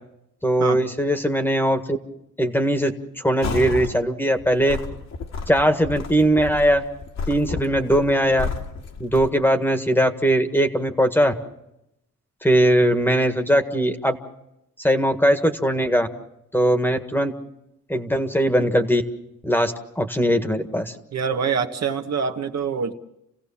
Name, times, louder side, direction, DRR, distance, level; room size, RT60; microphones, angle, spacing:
voice 1, 0.4-2.0 2.4-2.9 3.2-4.8 5.5-6.8 7.3-8.5 9.0-11.3 12.4-14.2 14.8-16.1 16.5-17.3 17.9-19.0 19.4-20.9, equal, 5° left, 7 dB, 1.7 m, -20 dB
sound 1, 3.4-4.0 4.4-9.3, left 4 dB, 65° left, 2.3 m, -31 dB
voice 2, 21.1-22.9, right 6 dB, 60° right, 6 dB, 1.5 m, -25 dB
29.0 x 16.5 x 7.3 m, 0.84 s
cardioid pair, 120°, 30 cm